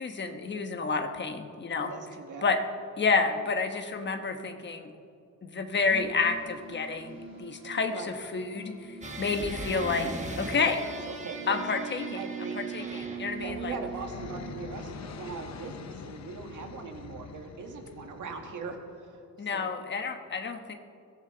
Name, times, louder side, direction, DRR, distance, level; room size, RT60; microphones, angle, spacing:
voice 1, 0.0-1.9 2.4-2.6 3.0-4.9 5.4-10.1 10.4-10.8 11.5-12.2 12.5-13.7 19.4-20.7, left 4 dB, 35° left, 5 dB, 1.2 m, -30 dB
voice 2, 1.8-2.5 3.3-3.4 7.9-8.1 10.4-11.6 12.1-12.6 13.4-19.8, right 4 dB, 75° right, 3 dB, 2.0 m, -41 dB
sound 1, 5.7-16.1, right 5 dB, 40° right, 3.7 m, -43 dB
sound 2, 9.0-13.5, right 2 dB, 25° right, 1.5 m, -39 dB
sound 3, 13.1-19.0, left 6 dB, 60° left, 0.9 m, -45 dB
22.0 x 15.0 x 4.0 m, 2.4 s
wide cardioid pair, 165°, 31 cm